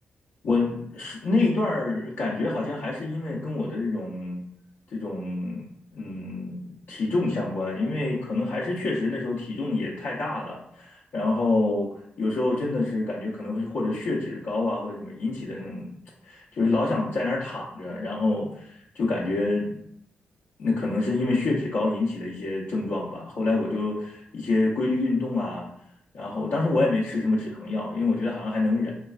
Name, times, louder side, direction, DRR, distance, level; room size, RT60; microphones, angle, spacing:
voice 1, 0.4-4.4 4.9-5.6 5.9-11.9 12.2-15.9 16.2-19.8 20.6-25.7 26.1-28.9, left 2 dB, 80° left, -7 dB, 0.7 m, -27 dB
3.3 x 3.0 x 2.4 m, 0.72 s
wide cardioid pair, 115°, 4 cm